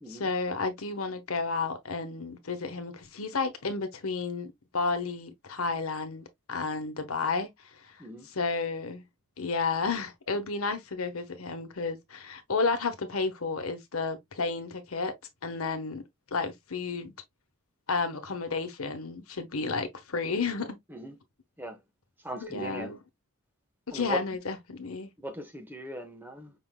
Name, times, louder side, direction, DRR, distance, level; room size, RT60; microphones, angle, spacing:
voice 1, 0.1-7.5 7.8-7.9 8.3-9.0 9.4-15.1 15.4-16.0 16.3-17.1 17.9-20.8 22.4-23.0 23.9-25.1, left 4 dB, 75° left, 1.1 m, -32 dB
voice 2, 22.2-22.9 23.9-24.2 25.2-26.5, right 1 dB, 10° right, 1.0 m, -39 dB
5.8 x 3.8 x 2.2 m
head